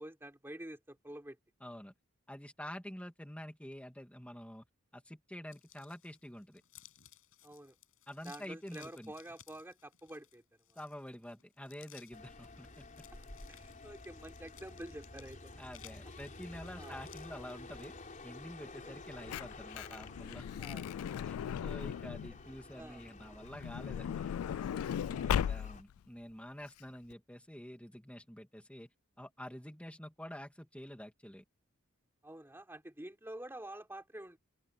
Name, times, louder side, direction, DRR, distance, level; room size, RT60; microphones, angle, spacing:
voice 1, 0.0-1.4 7.4-7.8 8.2-10.4 10.7-10.8 13.5-15.4 16.7-17.0 20.6-20.9 22.7-23.0 25.0-25.4 32.2-34.4, right 1 dB, 10° right, 3.7 m, -48 dB
voice 2, 1.6-1.9 2.3-4.7 4.9-6.6 8.1-9.1 10.7-13.1 15.6-17.9 18.2-20.5 21.2-24.4 25.3-28.9 29.2-31.4, equal, 5° left, 2.8 m, -48 dB
sound 1, 5.5-17.9, left 12 dB, 70° left, 7.8 m, -60 dB
sound 2, 12.1-25.8, left 2 dB, 40° left, 4.1 m, -51 dB
Truck / Door, 18.9-22.4 23.4-26.0 26.7-26.8 27.0-27.1, left 9 dB, 85° left, 0.3 m, -37 dB
open air
head